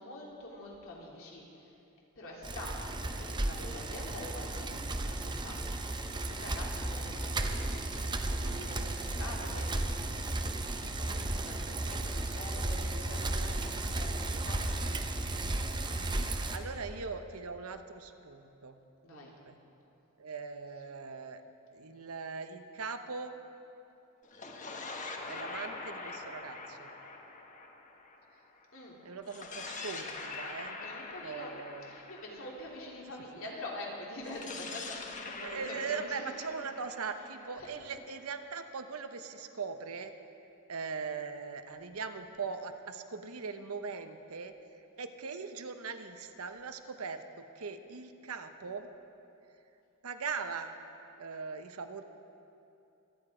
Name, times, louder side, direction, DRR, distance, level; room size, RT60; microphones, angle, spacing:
voice 1, 0.0-1.7 2.1-4.7 5.0-5.8 6.1-9.7 10.8-14.6 19.0-19.4 28.7-28.9 30.8-31.5 31.8-36.4 37.6-37.7, left 1 dB, 65° left, -3 dB, 3.1 m, -45 dB
Bicycle, 2.4-16.6, right 2 dB, 20° right, 0.7 m, -34 dB
voice 2, 13.0-13.4 16.0-18.8 19.1-19.6 20.2-21.4 21.7-23.3 25.3-26.9 29.0-30.8 31.2-31.9 35.4-40.1 40.7-48.9 50.0-50.8 51.2-52.0, right 5 dB, 75° right, 8 dB, 0.8 m, -40 dB
sound 1, 24.2-28.7 29.2-33.2 34.2-38.0, left 3 dB, 35° left, 1.1 m, -44 dB
24.0 x 9.9 x 4.9 m, 2.8 s
head